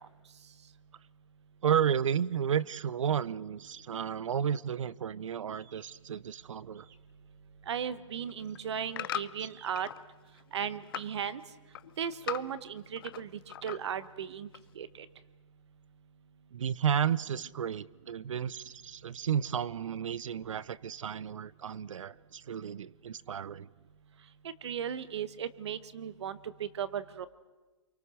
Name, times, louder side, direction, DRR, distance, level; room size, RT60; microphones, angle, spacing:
voice 1, 1.6-6.9 16.5-23.7, right 8 dB, 80° right, 20 dB, 0.7 m, -32 dB
sound 1, 5.5-5.9 6.7-7.1 7.4-7.7 8.3-8.5 8.9-9.7, right 7 dB, 15° right, 1.1 m, -59 dB
voice 2, 7.7-9.9 10.5-11.4 12.0-13.3 13.6-14.5 14.8-15.1 24.4-27.3, right 8 dB, 60° right, 15 dB, 1.2 m, -36 dB
sound 2, 8.2-10.0 10.4-11.2 11.5-13.2 13.5-14.1 14.5-14.6, left 12 dB, 45° left, 0.7 m, -40 dB
26.0 x 24.0 x 6.4 m, 1.2 s
hypercardioid pair, 160°, 16 cm